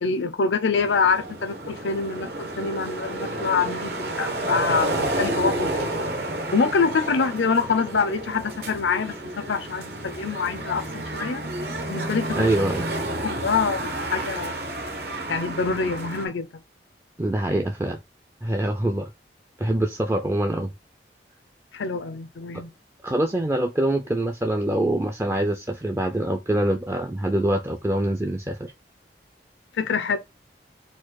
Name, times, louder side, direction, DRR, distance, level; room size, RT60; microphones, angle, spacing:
voice 1, 0.0-6.0 6.5-11.4 11.9-12.5 13.2-14.6 15.3-16.5 21.7-22.7 29.7-30.2, left 5 dB, 85° left, 0.5 m, -25 dB
sound 1, 0.7-16.3, right 1 dB, 60° right, 1.1 m, -30 dB
voice 2, 12.3-12.9 17.2-18.0 18.4-19.1 19.6-20.7 23.0-28.7, right 1 dB, 15° right, 0.3 m, -24 dB
4.3 x 2.3 x 4.5 m
head